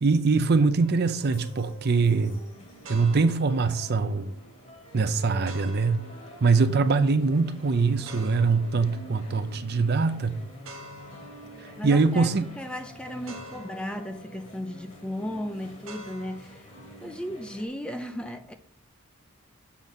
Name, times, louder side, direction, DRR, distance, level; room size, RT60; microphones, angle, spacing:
voice 1, 0.0-2.4 2.9-4.3 4.9-6.0 6.4-10.4 11.8-12.5, right 4 dB, 50° right, 0.5 m, -23 dB
sound 1, 0.8-16.4, right 1 dB, 75° right, 1.1 m, -50 dB
sound 2, 1.2-17.7, equal, 35° left, 2.4 m, -47 dB
voice 2, 11.8-16.7 17.0-18.6, left 1 dB, 5° left, 0.4 m, -35 dB
7.0 x 4.1 x 6.1 m
head